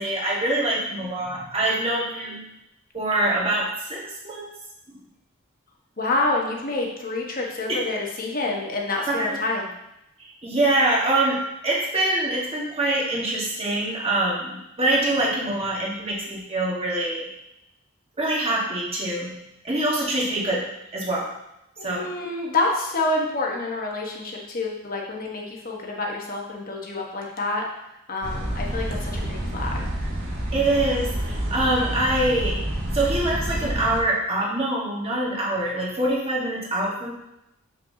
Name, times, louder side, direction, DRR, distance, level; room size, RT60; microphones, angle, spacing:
voice 1, 0.0-2.4 2.9-4.4 7.7-7.8 9.1-9.4 10.2-17.3 18.2-19.3 19.6-20.6 20.9-21.2 21.8-22.1 28.6-28.8 30.5-32.6 32.9-37.1, right 1 dB, 25° right, -4 dB, 1.5 m, -24 dB
voice 2, 6.0-9.7 21.8-27.6 28.1-29.8, left 2 dB, 40° left, -1 dB, 1.2 m, -27 dB
sound 1, 28.2-34.0, right 1 dB, 65° right, 1.9 m, -28 dB
7.4 x 5.5 x 2.8 m, 0.88 s
head